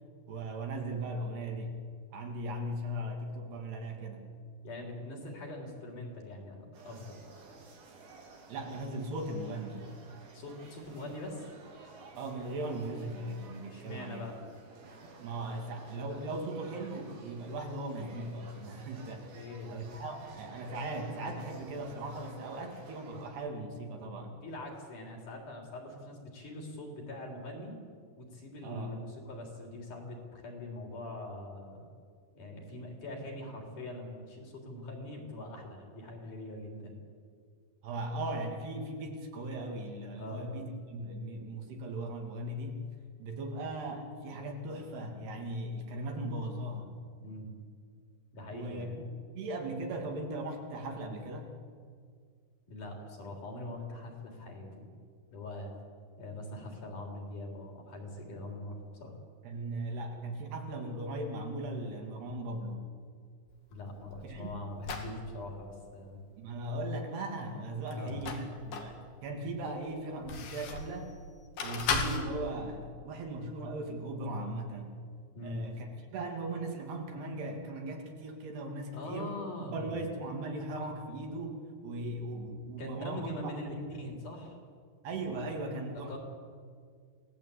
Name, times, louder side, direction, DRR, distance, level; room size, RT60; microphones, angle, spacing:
voice 1, 0.3-1.7 2.1-4.2 8.5-9.8 12.1-14.3 15.2-19.4 19.7-24.4 28.6-29.0 37.8-42.8 43.2-46.9 48.5-49.1 49.4-51.5 59.4-62.8 64.2-64.5 66.4-71.1 71.6-74.9 75.4-79.3 79.6-83.3 83.7-83.9 85.0-86.2, right 1 dB, 70° right, 2 dB, 4.7 m, -38 dB
voice 2, 4.6-7.2 10.3-11.5 13.7-14.4 19.3-19.8 24.4-27.7 28.2-31.9 32.3-37.0 40.2-40.5 47.2-47.5 48.3-49.0 52.7-54.9 55.3-55.7 56.2-59.1 63.7-66.2 67.9-68.2 75.3-75.7 78.9-80.0 82.8-84.6 86.1-86.2, left 1 dB, 45° left, 1 dB, 5.0 m, -43 dB
sound 1, 6.7-23.3, right 3 dB, 90° right, 6.0 m, -53 dB
sound 2, 63.5-65.2 67.9-69.0 69.5-71.0 71.6-72.2, left 4 dB, 65° left, 4.3 m, -36 dB
28.0 x 19.0 x 8.6 m, 2.1 s
omnidirectional pair, 5.1 m